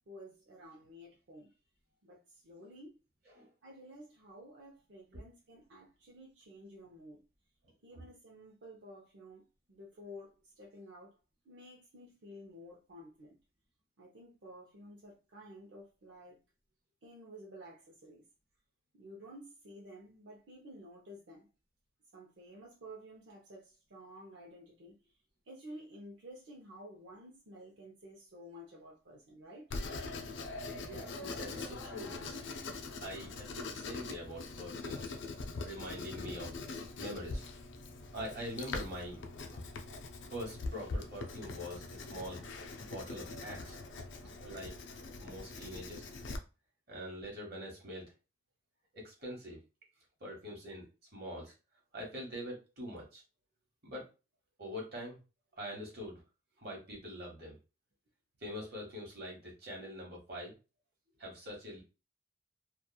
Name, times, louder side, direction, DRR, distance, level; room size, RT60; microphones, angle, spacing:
voice 1, 0.0-1.5 2.0-3.0 3.6-7.2 7.8-11.2 11.4-13.4 14.0-16.4 17.0-18.2 18.9-21.5 22.1-24.9 25.5-29.7 44.2-44.3, equal, 80° right, 0.6 m, -52 dB
Writing, 29.7-46.4, left 3 dB, 80° left, 0.4 m, -43 dB
voice 2, 30.8-32.4 33.0-35.1 35.6-36.5 37.0-37.4 38.1-39.2 39.5-39.6 40.3-42.4 42.8-43.8 44.4-44.7 45.2-46.1 46.9-48.1 48.9-49.6 50.2-51.5 51.9-53.2 53.8-54.1 54.6-55.2 55.6-56.2 56.6-57.6 58.4-60.5 61.2-61.8, equal, 55° right, 1.1 m, -44 dB
2.8 x 2.4 x 2.3 m
head